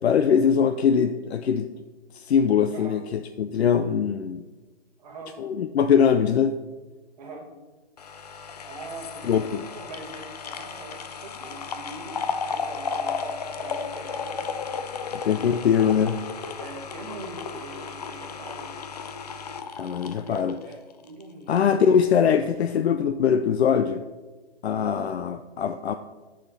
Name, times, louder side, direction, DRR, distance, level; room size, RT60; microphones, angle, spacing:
voice 1, 0.0-1.7 2.1-4.4 5.4-6.5 9.2-9.4 15.2-16.2 19.8-20.5 21.5-24.0 24.6-26.0, left 7 dB, 90° left, 8 dB, 0.5 m, -22 dB
voice 2, 2.7-3.0 5.0-5.4 7.2-7.5 8.7-9.5 9.7-15.4 16.6-18.8 20.2-22.0 24.7-25.0, right 2 dB, 40° right, 0 dB, 1.7 m, -42 dB
sound 1, 8.0-21.2 21.6-21.7, left 5 dB, 40° left, 0.5 m, -34 dB
11.0 x 4.3 x 4.0 m, 1.3 s
hypercardioid pair, 165°, 31 cm